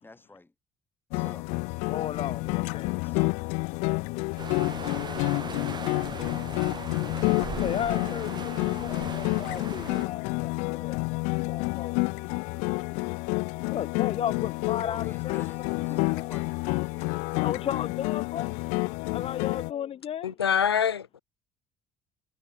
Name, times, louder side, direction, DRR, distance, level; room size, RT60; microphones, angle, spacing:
voice 1, 0.0-0.5 1.1-1.5 2.8-3.4 14.8-17.8, left 2 dB, 15° left, 4.9 m, -49 dB
sound 1, 1.1-19.7, left 30 dB, 70° left, 1.2 m, -29 dB
voice 2, 1.9-3.1 3.8-6.3 7.6-11.2 11.5-12.8 13.7-16.3 17.4-18.5 19.1-20.4, left 10 dB, 50° left, 2.1 m, -36 dB
sound 2, 4.4-10.1, right 6 dB, 35° right, 1.3 m, -39 dB
voice 3, 20.2-21.2, left 8 dB, 85° left, 1.2 m, -25 dB
figure-of-eight pair, 50°, 13 cm